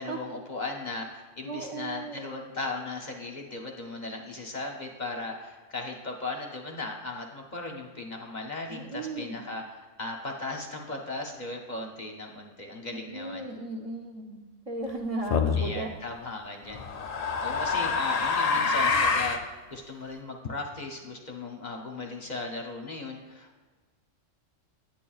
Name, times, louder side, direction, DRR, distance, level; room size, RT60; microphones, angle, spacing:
voice 1, 0.0-13.5 15.5-16.8 17.4-23.6, left 3 dB, 45° left, 2 dB, 0.7 m, -37 dB
voice 2, 1.5-2.3 8.7-9.4 12.9-15.9, right 2 dB, 50° right, 1 dB, 0.4 m, -36 dB
sound 1, 15.3-15.7 16.7-19.4, left 4 dB, 65° left, 0.4 m, -26 dB
9.1 x 8.8 x 2.3 m, 1.4 s
omnidirectional pair, 1.3 m